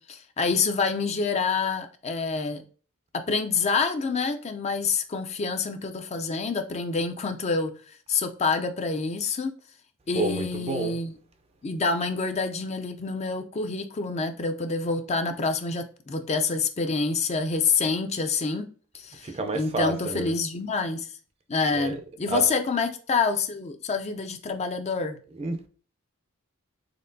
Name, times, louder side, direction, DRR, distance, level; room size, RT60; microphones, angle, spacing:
voice 1, 0.1-2.6 3.3-7.7 8.1-9.5 10.1-11.1 11.6-18.6 18.9-21.1 21.5-25.2, left 4 dB, 30° left, 0.4 m, -27 dB
voice 2, 10.1-11.0 19.2-20.3 21.7-22.0 22.3-22.4 25.3-25.7, right 3 dB, 30° right, 0.5 m, -29 dB
4.3 x 3.6 x 2.6 m
head